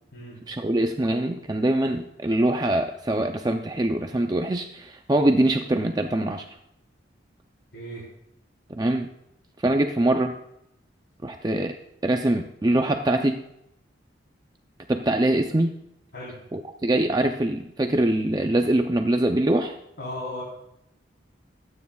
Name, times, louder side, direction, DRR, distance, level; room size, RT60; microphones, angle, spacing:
voice 1, 0.5-6.5 8.7-9.1 9.6-10.4 11.2-11.7 12.0-13.4 14.9-15.7 16.5-19.8, right 1 dB, 20° right, 5 dB, 0.5 m, -23 dB
voice 2, 20.0-20.4, left 1 dB, 70° left, -7 dB, 3.8 m, -35 dB
24.0 x 9.4 x 2.3 m, 0.80 s
head